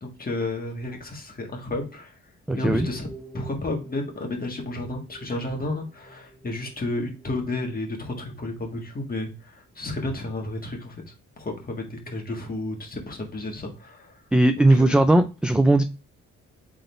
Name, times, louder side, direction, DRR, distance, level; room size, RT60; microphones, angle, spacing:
voice 1, 0.0-2.1 2.6-3.1 3.3-11.0 11.4-14.1 14.6-15.0, left 2 dB, 30° left, 2 dB, 1.6 m, -32 dB
sound 1, 2.5-7.9 8.2-8.4, right 1 dB, 10° left, 1.0 m, -44 dB
voice 2, 2.5-2.9 14.3-15.8, right 1 dB, 5° right, 8 dB, 0.3 m, -18 dB
3.9 x 3.8 x 3.2 m, 0.32 s
cardioid pair, 90°, 30 cm